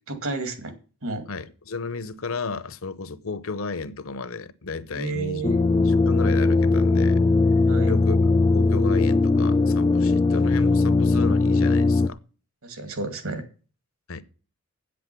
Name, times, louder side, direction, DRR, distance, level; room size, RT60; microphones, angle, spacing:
voice 1, 0.1-0.7 1.0-1.3 4.9-5.5 7.7-7.9 12.6-13.4, right 3 dB, 70° right, 2.2 m, -31 dB
voice 2, 1.3-5.4 5.8-7.2 7.8-12.2 14.1-14.2, left 4 dB, 65° left, 0.8 m, -33 dB
sound 1, 5.4-12.1, left 3 dB, 20° left, 0.4 m, -19 dB
8.7 x 7.9 x 6.8 m
head